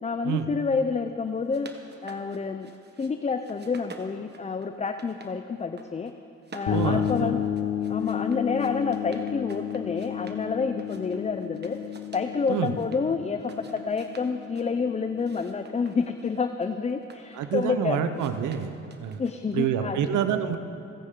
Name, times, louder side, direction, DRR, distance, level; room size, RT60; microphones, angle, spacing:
voice 1, 0.0-1.7 2.0-2.7 3.0-6.1 6.5-7.4 7.9-11.8 12.1-18.0 19.2-20.1, left 5 dB, 20° left, 8 dB, 0.5 m, -29 dB
sound 1, 1.3-3.1 3.4-5.3 5.6-6.1 6.4-10.4 10.8-13.0 13.4-14.7 15.2-17.7 18.1-19.6, right 4 dB, 35° right, 1.4 m, -49 dB
sound 2, 6.7-16.3, left 10 dB, 80° left, 1.3 m, -32 dB
voice 2, 6.7-7.3 12.5-12.7 17.3-18.7 19.0-19.2 19.5-20.6, right 8 dB, 75° right, 9 dB, 0.9 m, -27 dB
29.5 x 9.8 x 3.8 m, 2.6 s
cardioid pair, 90°, 30 cm